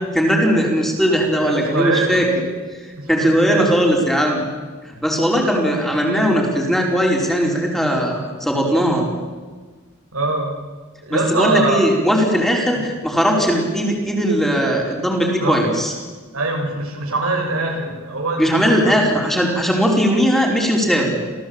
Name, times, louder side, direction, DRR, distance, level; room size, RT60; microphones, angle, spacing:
voice 1, 0.1-2.3 3.1-4.5 4.8-9.1 11.1-15.9 18.4-21.2, equal, ahead, -1 dB, 4.8 m, -18 dB
voice 2, 1.4-2.2 3.0-4.0 7.5-7.8 8.2-8.3 10.1-10.6 11.0-11.8 12.7-12.8 15.4-15.7 16.3-19.0, right 2 dB, 90° right, 1 dB, 7.0 m, -23 dB
28.0 x 17.0 x 8.9 m, 1.4 s
head